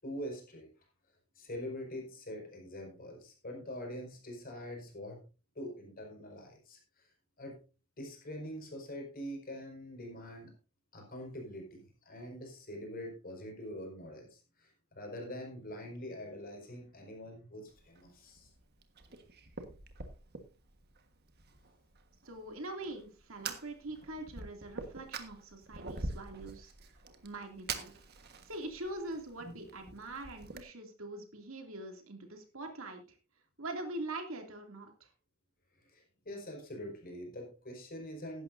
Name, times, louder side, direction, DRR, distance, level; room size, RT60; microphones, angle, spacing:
voice 1, 0.0-0.7 1.3-5.2 5.5-7.1 7.4-7.6 8.0-10.5 10.9-18.5 29.4-29.6 35.8-38.4, equal, 45° left, 2 dB, 5.1 m, -44 dB
Fire, 17.7-30.6, right 4 dB, 50° right, 1.5 m, -46 dB
voice 2, 22.2-26.9 27.2-27.9 28.5-33.2 33.6-35.1, right 2 dB, 70° right, 4 dB, 2.6 m, -43 dB
16.0 x 11.5 x 2.6 m, 0.33 s
head